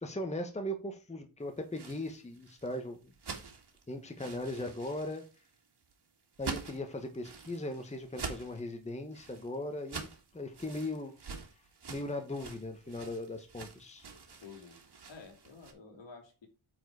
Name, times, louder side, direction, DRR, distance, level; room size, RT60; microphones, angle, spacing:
voice 1, 0.0-3.0 3.9-5.3 6.4-11.2 11.9-14.1, left 1 dB, 15° left, 1.2 m, -38 dB
sound 1, 1.5-15.7, right 5 dB, 55° right, 2.4 m, -46 dB
voice 2, 11.9-12.2 14.4-14.8 15.1-16.5, left 4 dB, 65° left, 2.9 m, -51 dB
9.2 x 4.7 x 4.7 m
wide cardioid pair, 155°, 48 cm